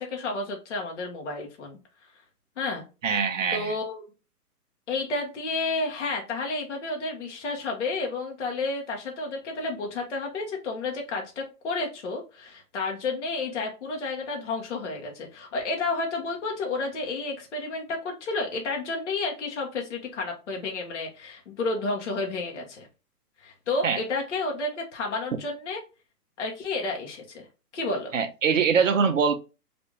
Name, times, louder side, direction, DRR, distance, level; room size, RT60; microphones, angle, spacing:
voice 1, 0.0-1.8 2.6-2.8 3.5-4.1 4.9-22.9 23.4-25.8 26.4-27.5 27.7-28.2, left 3 dB, 50° left, 1.0 m, -31 dB
voice 2, 3.0-3.8 23.8-24.0 28.1-29.3, right 6 dB, 55° right, 0.6 m, -23 dB
3.3 x 2.6 x 3.0 m
hypercardioid pair, 170°, 47 cm